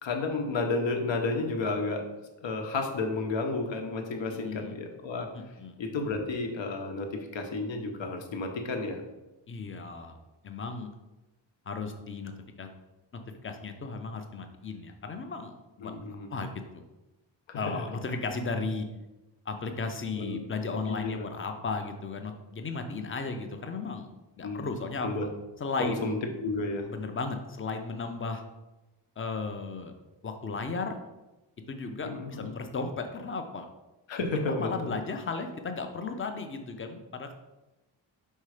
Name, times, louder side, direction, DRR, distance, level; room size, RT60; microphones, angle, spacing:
voice 1, 0.0-2.1 2.4-5.3 5.8-9.0 15.8-16.3 17.5-17.6 18.1-18.2 20.2-20.4 20.9-21.3 24.4-24.7 25.0-25.3 25.8-26.2 26.4-26.9 32.0-32.5 34.1-35.0, left 3 dB, 75° left, 4 dB, 1.0 m, -32 dB
voice 2, 4.3-4.7 5.3-5.8 9.5-10.2 10.4-10.9 11.7-12.3 12.6-12.7 13.4-15.9 16.3-16.5 17.5-18.9 19.5-24.1 24.4-25.3 25.6-26.2 26.9-28.4 29.2-29.9 30.2-31.0 31.7-33.7 34.5-37.3, left 4 dB, 30° left, 6 dB, 0.5 m, -35 dB
5.5 x 3.8 x 4.8 m, 1.0 s
wide cardioid pair, 180°, 45 cm